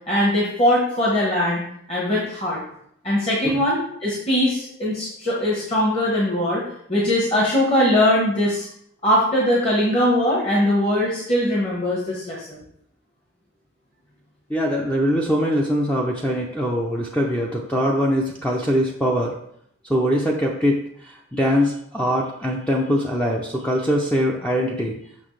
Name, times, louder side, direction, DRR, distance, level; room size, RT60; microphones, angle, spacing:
voice 1, 0.1-1.6 1.9-2.6 3.0-6.6 6.9-8.7 9.0-12.6, left 1 dB, 25° left, -5 dB, 1.1 m, -21 dB
voice 2, 14.5-19.3 19.8-25.0, equal, 5° left, -2 dB, 0.5 m, -22 dB
6.3 x 6.0 x 3.2 m, 0.70 s
head